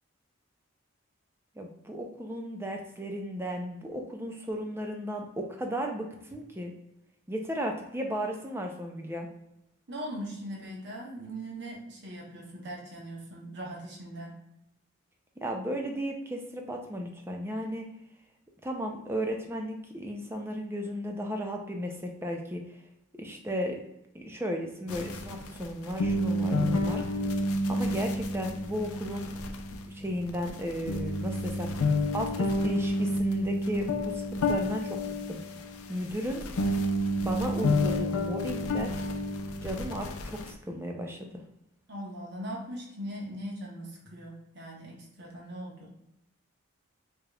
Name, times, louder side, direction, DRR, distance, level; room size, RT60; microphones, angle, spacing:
voice 1, 1.6-6.7 7.3-9.3 15.4-17.9 18.6-22.8 23.1-23.8 24.1-27.2 27.7-29.3 29.9-35.0 35.3-35.4 35.9-36.5 37.2-38.9 39.6-41.4, equal, 10° right, 2 dB, 0.4 m, -35 dB
voice 2, 9.9-14.4 41.9-45.9, right 1 dB, 50° right, -2 dB, 1.1 m, -40 dB
sound 1, 24.9-40.5, left 1 dB, 85° left, 0.5 m, -30 dB
4.9 x 3.0 x 2.3 m, 0.86 s
head